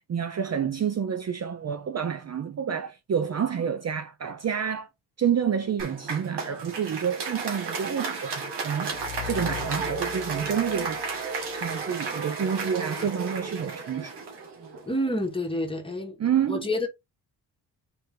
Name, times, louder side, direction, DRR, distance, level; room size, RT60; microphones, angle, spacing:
voice 1, 0.0-4.9 5.2-11.1 11.5-14.2 16.2-16.7, right 8 dB, 40° right, 0.6 m, -29 dB
Applause, 5.8-15.1, right 4 dB, 80° right, 1.9 m, -33 dB
sound 1, 8.9-11.7, left 8 dB, 65° left, 0.9 m, -39 dB
voice 2, 14.8-16.2 16.5-16.9, left 1 dB, 15° left, 1.6 m, -28 dB
4.2 x 3.2 x 3.7 m
cardioid pair, 75°, 41 cm